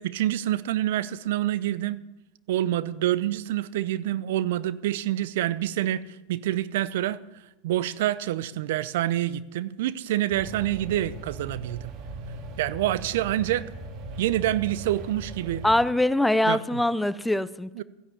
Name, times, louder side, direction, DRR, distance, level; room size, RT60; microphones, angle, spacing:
voice 1, 0.0-2.0 2.5-6.0 6.3-7.2 7.6-11.9 12.6-13.7 14.2-15.6 16.5-16.6 17.8-17.9, right 13 dB, 65° right, 17 dB, 0.7 m, -27 dB
sound 1, 10.3-15.8, right 2 dB, 50° right, 2.8 m, -39 dB
voice 2, 15.6-17.8, left 1 dB, 5° left, 17 dB, 0.6 m, -23 dB
14.5 x 11.0 x 8.4 m, 1.0 s
hypercardioid pair, 100°, 0 cm